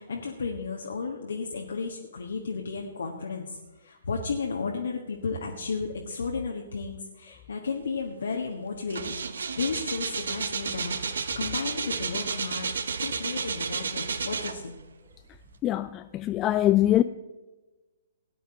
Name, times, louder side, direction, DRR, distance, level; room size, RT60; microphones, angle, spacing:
voice 1, 0.0-14.7, left 4 dB, 65° left, 1.4 m, -33 dB
sound 1, 8.1-8.3 8.6-14.9 15.4-15.5, right 5 dB, 65° right, 1.0 m, -32 dB
voice 2, 15.6-17.0, left 13 dB, 20° left, 0.4 m, -23 dB
18.0 x 10.0 x 3.8 m
figure-of-eight pair, 120°, 0 cm